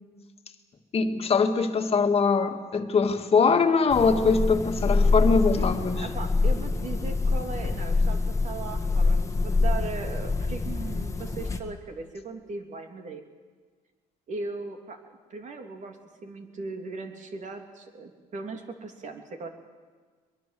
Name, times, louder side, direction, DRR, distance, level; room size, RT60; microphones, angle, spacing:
voice 1, 0.9-6.0, left 4 dB, 35° left, 6 dB, 2.1 m, -22 dB
sound 1, 3.9-11.6, left 3 dB, 20° left, 1.9 m, -25 dB
voice 2, 5.6-13.2 14.3-15.0 15.3-16.0 16.2-19.5, right 3 dB, 45° right, 4 dB, 3.2 m, -38 dB
23.0 x 22.0 x 7.7 m, 1.5 s
cardioid pair, 110°, 17 cm